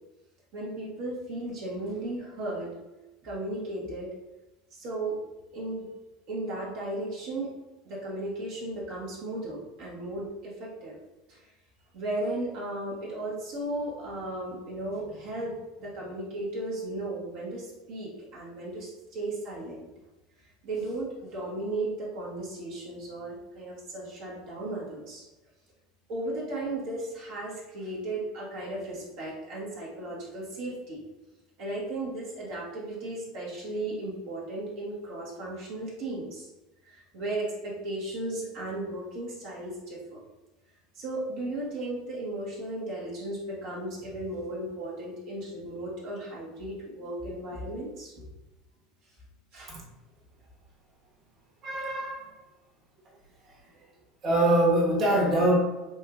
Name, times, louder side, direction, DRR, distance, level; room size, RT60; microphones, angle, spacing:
voice 1, 0.5-2.7 3.2-4.1 4.7-5.2 5.5-5.9 6.3-7.5 7.8-11.0 11.3-11.5 11.9-15.5 15.8-19.9 20.4-25.2 26.1-31.0 31.6-36.5 36.8-40.2 40.9-48.2 49.5-49.7, right 1 dB, 60° right, -5 dB, 1.1 m, -35 dB
voice 2, 51.6-52.3 53.7-53.8 54.2-55.6, right 1 dB, 40° right, -3 dB, 1.2 m, -24 dB
4.3 x 2.8 x 2.4 m, 1.1 s
hypercardioid pair, 75°, 0 cm